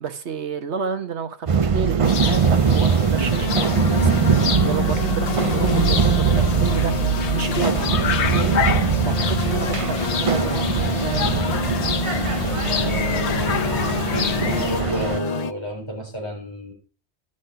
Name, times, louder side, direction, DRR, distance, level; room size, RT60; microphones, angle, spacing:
voice 1, 0.0-7.0 7.3-8.6 9.0-11.6, right 6 dB, 80° right, 1.4 m, -30 dB
sound 1, 1.5-15.2, right 6 dB, 40° right, 0.5 m, -22 dB
sound 2, 2.0-14.8, left 7 dB, 80° left, 1.2 m, -29 dB
sound 3, 3.2-15.5, left 6 dB, 45° left, 0.6 m, -28 dB
voice 2, 12.7-13.8 14.1-16.7, right 1 dB, 25° right, 4.4 m, -31 dB
12.0 x 6.2 x 5.7 m
omnidirectional pair, 1.1 m